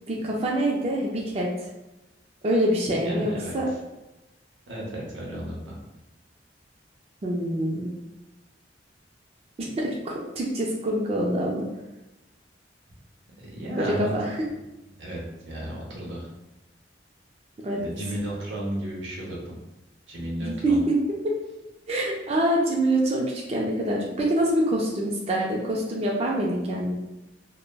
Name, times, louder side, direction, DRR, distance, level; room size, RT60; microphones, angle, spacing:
voice 1, 0.1-1.5 2.4-3.7 7.2-7.9 9.6-11.6 13.8-14.4 17.6-18.1 20.4-20.9 21.2-21.3 21.9-26.9, right 1 dB, 35° right, -2 dB, 0.3 m, -25 dB
voice 2, 3.0-3.6 4.7-5.8 13.4-14.1 15.0-15.2 15.5-16.3 17.8-19.6 20.1-20.8, right 1 dB, 85° right, -3 dB, 0.8 m, -33 dB
3.2 x 2.1 x 2.2 m, 0.99 s
head